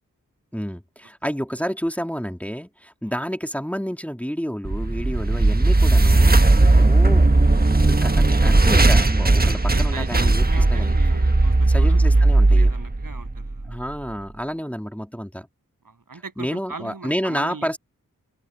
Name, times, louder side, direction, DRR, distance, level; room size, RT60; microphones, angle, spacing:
voice 1, 0.5-10.4 10.7-10.9 11.7-12.7 13.7-15.5 16.4-17.8, equal, 5° left, 2.6 m, -30 dB
sound 1, 4.7-13.8, right 2 dB, 30° right, 1.4 m, -17 dB
voice 2, 6.6-6.9 9.7-13.7 15.8-17.8, right 4 dB, 85° right, 7.5 m, -39 dB
open air
wide cardioid pair, 60°, 33 cm